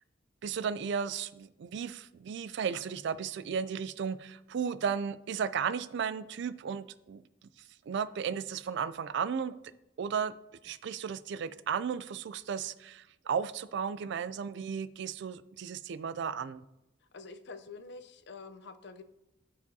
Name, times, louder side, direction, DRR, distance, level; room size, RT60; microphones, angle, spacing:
voice 1, 0.4-7.2 7.9-9.6 10.0-10.3 10.6-16.6, right 7 dB, 65° right, 16 dB, 0.3 m, -34 dB
voice 2, 17.0-19.0, left 4 dB, 65° left, 9 dB, 0.6 m, -47 dB
13.0 x 4.8 x 2.7 m, 0.92 s
head